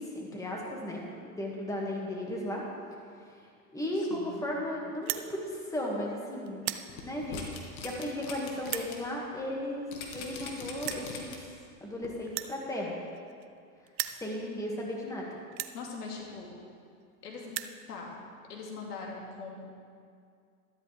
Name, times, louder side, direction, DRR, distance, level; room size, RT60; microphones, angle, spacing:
voice 1, 0.0-2.6 3.7-6.7 7.0-7.5 7.8-9.9 10.1-11.4 11.8-12.9 14.2-15.3, left 1 dB, 5° left, -2 dB, 2.2 m, -35 dB
voice 2, 3.9-4.4 15.7-16.5 17.2-17.5 17.9-18.1 18.5-19.7, left 4 dB, 85° left, -1 dB, 2.6 m, -41 dB
sound 1, 4.9-5.3 5.9-6.2 6.5-6.9 7.6-7.7 8.6-8.9 10.0-10.1 10.2-10.3 10.8-11.1 12.3-13.6 13.9-14.2 14.9-15.0 15.5-15.8 16.7-16.8 17.0-17.1 17.3-17.8, right 15 dB, 30° right, 0.4 m, -36 dB
sound 2, 6.9-8.9 9.3-9.4 9.9-11.6 12.0-12.1, left 5 dB, 70° left, 2.2 m, -41 dB
13.0 x 12.5 x 3.6 m, 2.2 s
hypercardioid pair, 110°, 45 cm